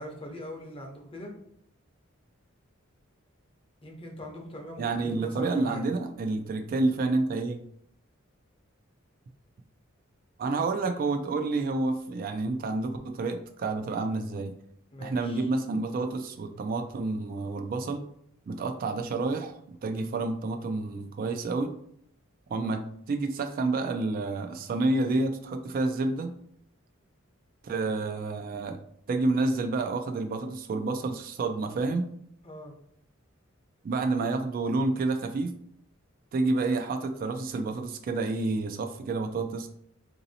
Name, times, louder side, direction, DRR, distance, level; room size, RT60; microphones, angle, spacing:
voice 1, 0.0-1.3 3.8-5.8 14.9-15.5 32.4-32.8, equal, 30° left, 1 dB, 0.7 m, -41 dB
voice 2, 4.8-7.6 10.4-14.5 15.0-18.0 18.5-21.7 22.5-26.3 27.6-28.8 29.1-32.1 33.8-35.5 36.3-39.7, right 3 dB, 45° right, 6 dB, 0.3 m, -29 dB
3.9 x 2.7 x 2.7 m, 0.67 s
head